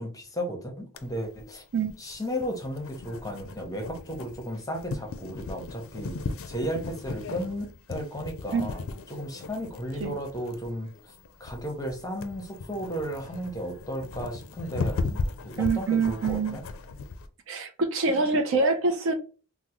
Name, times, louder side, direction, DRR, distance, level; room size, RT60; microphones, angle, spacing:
voice 1, 0.0-1.6 2.0-6.2 6.5-8.8 9.1-10.9 11.4-16.6, equal, 15° left, 0.7 m, -34 dB
sound 1, 1.0-17.3, left 3 dB, 60° left, 0.4 m, -37 dB
voice 2, 15.6-16.6 17.5-19.1, right 4 dB, 60° right, 0.5 m, -25 dB
3.6 x 2.0 x 2.9 m
head